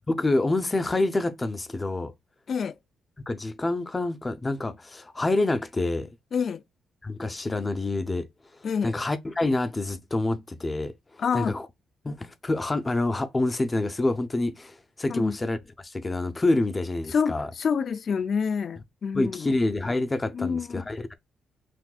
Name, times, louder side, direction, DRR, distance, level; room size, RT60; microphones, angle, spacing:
voice 1, 0.1-2.1 3.3-6.2 7.0-8.3 8.8-11.7 12.0-17.5 19.1-21.0, left 2 dB, 20° left, 0.7 m, -27 dB
voice 2, 6.3-6.6 8.6-8.9 11.2-11.5 15.1-15.4 17.1-19.5 20.3-20.8, left 6 dB, 50° left, 0.4 m, -27 dB
6.1 x 2.6 x 2.3 m
cardioid pair, 90°, 0 cm